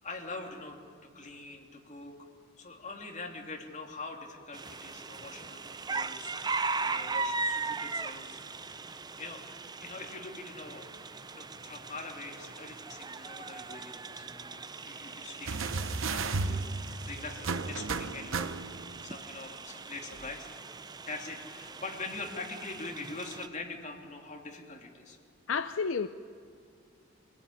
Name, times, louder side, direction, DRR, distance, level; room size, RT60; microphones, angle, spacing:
voice 1, 0.0-2.2 2.6-8.7 9.2-9.5 9.8-10.9 11.3-20.5 21.0-25.2, left 3 dB, 35° left, 2.7 m, -44 dB
sound 1, 4.5-23.5, right 3 dB, 20° right, 0.6 m, -39 dB
sound 2, 15.5-19.0 20.2-20.3, right 4 dB, 75° right, 0.9 m, -34 dB
voice 2, 25.5-26.1, left 5 dB, 70° left, 0.6 m, -30 dB
24.5 x 17.0 x 9.9 m
head